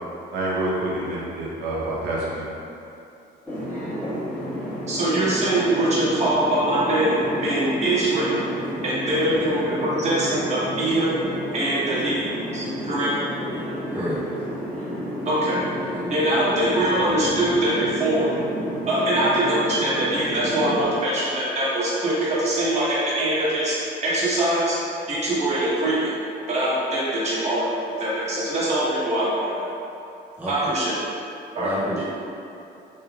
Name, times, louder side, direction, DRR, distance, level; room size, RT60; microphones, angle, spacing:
voice 1, 0.3-2.5, right 1 dB, 85° right, -6 dB, 0.7 m, -27 dB
sound 1, 3.5-20.8, equal, 10° left, 1.3 m, -31 dB
voice 2, 4.9-8.5 8.8-11.2 11.5-13.2 15.2-15.6 16.1-18.3 18.9-24.8 25.1-26.1 26.5-29.7 30.5-30.9 31.5-31.7, right 1 dB, 40° right, -9 dB, 1.0 m, -23 dB
voice 3, 30.4-30.7 31.6-32.0, equal, 10° right, -9 dB, 0.5 m, -30 dB
3.3 x 3.1 x 2.3 m, 2.7 s
cardioid pair, 135°, 18 cm